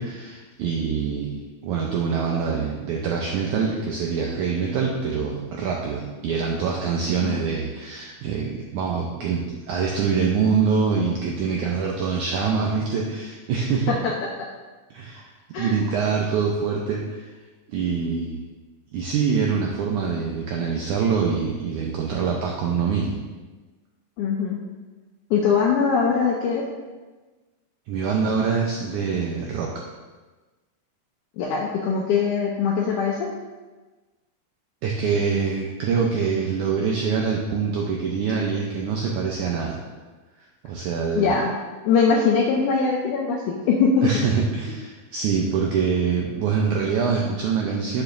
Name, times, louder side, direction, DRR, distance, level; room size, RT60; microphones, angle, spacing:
voice 1, 0.0-13.9 14.9-15.3 15.6-17.3 17.7-18.4 18.9-23.2 27.9-29.7 34.8-39.8 40.6-41.4 44.0-48.0, right 5 dB, 85° right, -1 dB, 1.7 m, -25 dB
voice 2, 15.5-15.9 24.2-24.6 25.3-26.6 31.4-33.2 41.2-41.5 41.9-44.1, left 5 dB, 80° left, -1 dB, 1.8 m, -21 dB
9.7 x 6.8 x 2.6 m, 1.3 s
omnidirectional pair, 4.3 m